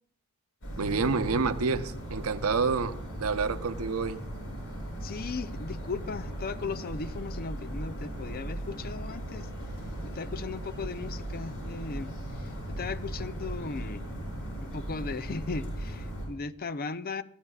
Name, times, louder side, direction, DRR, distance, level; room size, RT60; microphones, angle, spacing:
sound 1, 0.6-16.3, right 1 dB, 65° left, 6.9 m, -38 dB
voice 1, 0.8-4.2, right 4 dB, 70° right, 0.8 m, -28 dB
voice 2, 5.0-9.5 10.1-12.1 12.4-14.0 14.6-17.2, left 4 dB, 40° left, 0.5 m, -37 dB
23.5 x 14.5 x 2.4 m
head